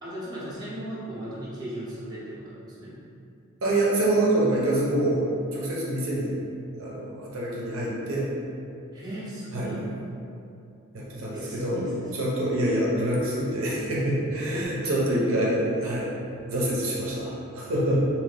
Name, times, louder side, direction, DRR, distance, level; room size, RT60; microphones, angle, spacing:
voice 1, 0.0-3.0 8.9-9.9 11.3-12.2 14.4-15.1, right 1 dB, 20° right, -9 dB, 0.7 m, -37 dB
voice 2, 3.6-5.3 5.5-6.4 6.8-8.3 9.5-9.7 10.9-11.8 12.2-16.1 16.5-18.0, right 1 dB, 70° right, -5 dB, 0.6 m, -26 dB
2.7 x 2.6 x 3.3 m, 2.6 s
head